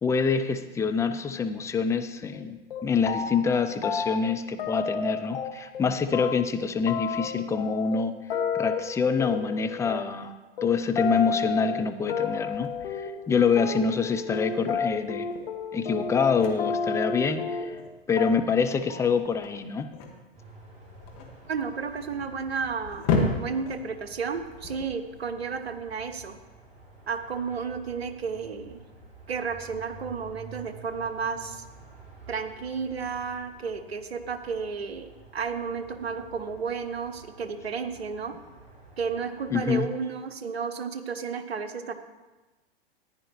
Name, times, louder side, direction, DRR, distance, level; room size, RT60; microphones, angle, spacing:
voice 1, 0.0-8.2 8.5-10.3 10.6-15.3 15.7-17.8 18.1-19.9 39.5-39.9, left 5 dB, 10° left, 7 dB, 0.5 m, -26 dB
sound 1, 2.3-2.4 2.7-3.5 3.8-5.8 6.1-17.9 18.2-18.6 18.9-19.3, left 5 dB, 65° left, 1.2 m, -31 dB
sound 2, 12.5-25.6, left 3 dB, 40° left, 1.8 m, -35 dB
sound 3, 20.3-39.8, right 2 dB, 20° right, 3.1 m, -50 dB
voice 2, 21.5-23.1 23.4-26.4 27.1-28.8 29.3-31.6 32.3-38.3 39.0-41.9, right 5 dB, 75° right, 9 dB, 1.1 m, -32 dB
14.5 x 10.5 x 3.1 m, 1.2 s
figure-of-eight pair, 105°, 32 cm